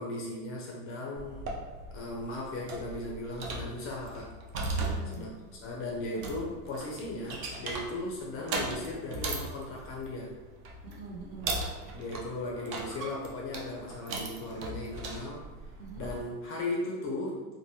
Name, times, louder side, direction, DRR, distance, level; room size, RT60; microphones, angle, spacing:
voice 1, 0.0-1.6 1.9-4.3 5.1-5.3 5.6-10.3 11.9-15.4 16.0-17.5, left 2 dB, 30° left, -2 dB, 0.5 m, -37 dB
sound 1, 1.2-16.2, right 2 dB, 30° right, 0.3 m, -39 dB
voice 2, 4.6-5.4 10.8-11.8 15.8-16.2, right 3 dB, 65° right, -2 dB, 1.1 m, -45 dB
3.1 x 2.2 x 2.7 m, 1.3 s
hypercardioid pair, 95°, 48 cm